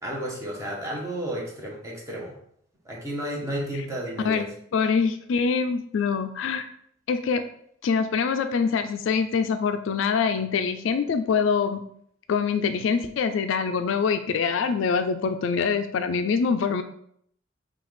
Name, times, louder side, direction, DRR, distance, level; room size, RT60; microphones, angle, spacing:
voice 1, 0.0-2.4 2.8-4.5, right 1 dB, 15° right, -2 dB, 0.9 m, -32 dB
voice 2, 4.7-6.7 7.1-7.4 7.8-11.8 12.3-16.8, left 5 dB, 70° left, 9 dB, 0.3 m, -24 dB
5.6 x 2.4 x 3.2 m, 0.66 s
head